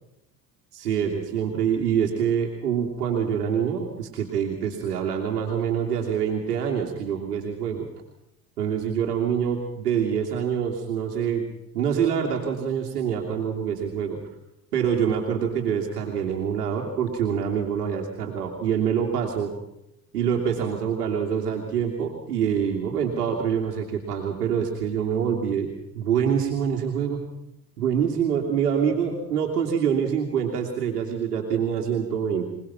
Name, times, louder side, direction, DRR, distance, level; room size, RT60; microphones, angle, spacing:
voice 1, 0.7-7.9 8.6-11.4 11.7-14.2 14.7-19.5 20.1-25.7 25.9-27.2 27.8-32.5, right 7 dB, 80° right, 1 dB, 3.0 m, -25 dB
26.5 x 19.5 x 5.9 m, 0.86 s
hypercardioid pair, 70°, 46 cm